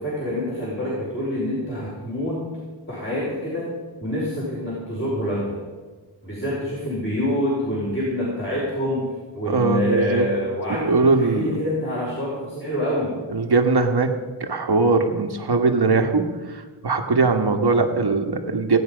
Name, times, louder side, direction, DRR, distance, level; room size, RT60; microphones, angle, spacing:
voice 1, 0.0-2.4 2.9-3.7 4.0-5.5 6.2-9.1 9.3-13.1, left 1 dB, 25° left, -7 dB, 4.9 m, -26 dB
voice 2, 9.5-10.3 10.7-11.5 13.3-18.8, right 3 dB, 50° right, 5 dB, 1.6 m, -21 dB
18.0 x 9.3 x 5.2 m, 1.4 s
cardioid pair, 65°, 49 cm